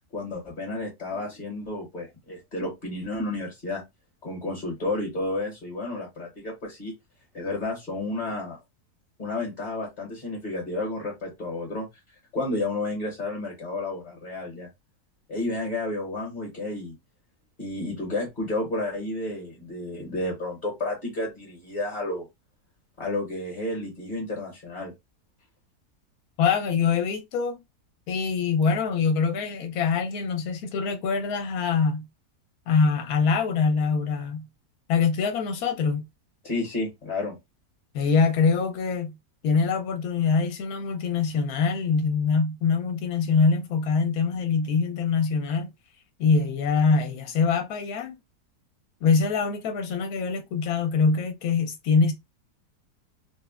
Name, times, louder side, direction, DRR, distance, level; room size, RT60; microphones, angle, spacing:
voice 1, 0.1-3.8 4.2-6.9 7.3-8.6 9.2-11.9 12.3-14.7 15.3-16.9 17.6-22.3 23.0-24.9 36.4-37.4, left 2 dB, 35° left, 0.9 m, -31 dB
voice 2, 26.4-27.6 28.1-32.1 32.7-34.5 34.9-36.0 37.9-39.1 39.4-45.7 46.2-48.2 49.0-52.1, left 5 dB, 70° left, 1.1 m, -24 dB
3.4 x 2.1 x 2.3 m
omnidirectional pair, 1.7 m